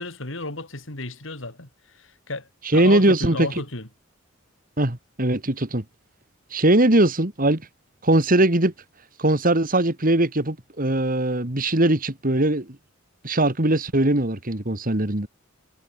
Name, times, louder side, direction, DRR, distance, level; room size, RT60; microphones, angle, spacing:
voice 1, 0.0-1.7 1.9-3.9, left 2 dB, 70° left, 4.4 m, -33 dB
voice 2, 2.7-3.5 4.8-5.8 6.5-7.6 8.0-8.7 9.2-12.7 13.2-15.3, right 1 dB, 45° right, 2.5 m, -20 dB
head